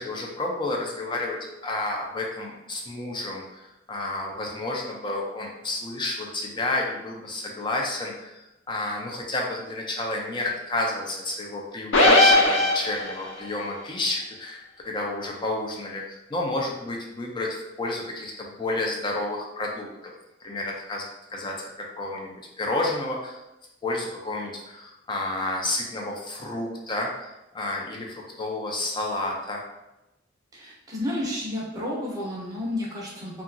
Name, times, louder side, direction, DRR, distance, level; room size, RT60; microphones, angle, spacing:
voice 1, 0.0-20.1 20.4-21.0 21.3-21.6 22.0-23.4 23.8-29.6, left 2 dB, 25° left, 0 dB, 0.4 m, -31 dB
sound 1, 11.9-13.3, left 1 dB, 75° left, 0.6 m, -17 dB
voice 2, 30.5-33.4, left 1 dB, 20° right, -4 dB, 0.7 m, -31 dB
2.8 x 2.4 x 2.5 m, 0.93 s
head